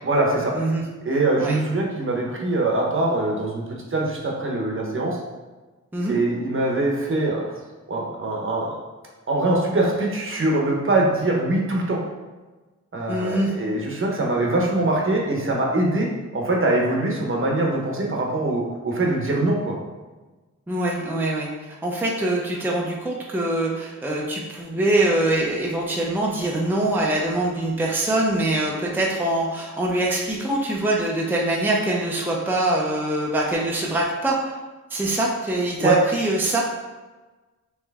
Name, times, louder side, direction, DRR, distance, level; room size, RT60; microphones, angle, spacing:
voice 1, 0.0-0.5 1.0-5.2 6.1-7.5 7.9-8.8 9.3-12.0 12.9-19.7 35.8-36.0, right 2 dB, 40° right, -1 dB, 0.9 m, -23 dB
voice 2, 13.1-13.5 20.7-34.6 34.9-36.6, right 1 dB, 5° right, -3 dB, 0.6 m, -23 dB
3.3 x 3.1 x 3.4 m, 1.2 s
cardioid pair, 70°, 31 cm